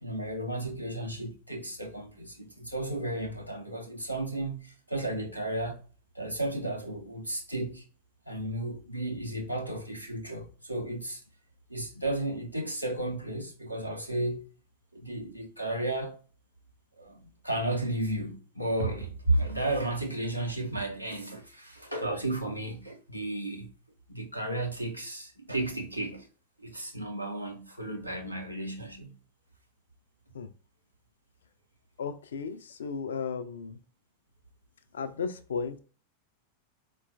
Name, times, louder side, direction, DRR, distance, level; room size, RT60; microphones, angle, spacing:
voice 1, 0.0-5.8 6.1-7.8 8.3-11.2 11.7-14.5 14.9-16.2 17.0-23.7 24.1-26.3 26.6-29.1, right 1 dB, 90° right, 0.6 m, -33 dB
voice 2, 32.0-33.8 34.9-35.8, left 5 dB, 65° left, 0.3 m, -35 dB
4.2 x 2.3 x 2.3 m
figure-of-eight pair, 90°, 0 cm